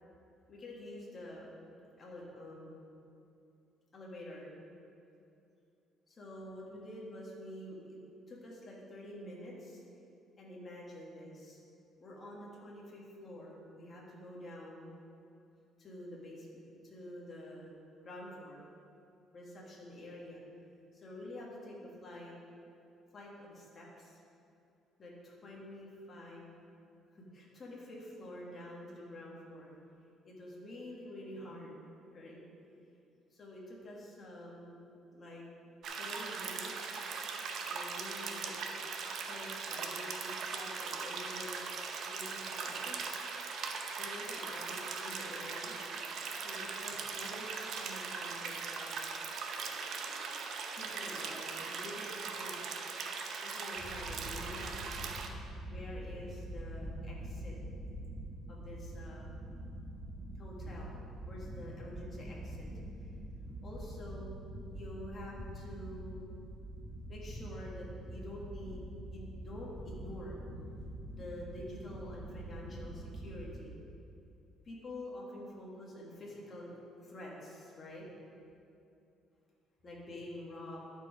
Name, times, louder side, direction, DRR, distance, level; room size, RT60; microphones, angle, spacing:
voice 1, 0.5-1.5 2.0-2.8 3.9-4.5 6.1-8.0 8.3-9.8 10.4-11.6 12.0-14.9 15.8-17.8 18.0-18.7 19.3-20.4 20.9-22.3 23.1-24.2 25.0-26.5 27.1-29.7 30.2-31.7 32.1-32.4 33.3-34.8 35.1-35.5 36.0-37.1 37.7-38.8 39.3-41.6 42.1-43.0 44.0-45.8 46.4-49.0 50.8-52.6 53.4-55.1 55.7-57.6 58.5-59.3 60.4-61.0 61.3-62.7 63.0-63.1 63.6-64.3 64.7-66.3 67.1-70.4 71.1-73.8 74.6-78.1 79.8-80.8, left 1 dB, 25° left, -4 dB, 1.6 m, -48 dB
sound 1, 35.8-55.3, right 5 dB, 50° right, 0.7 m, -40 dB
sound 2, 53.8-73.6, right 1 dB, ahead, 1.7 m, -45 dB
11.0 x 4.7 x 4.9 m, 2.6 s
cardioid pair, 160°, 0 cm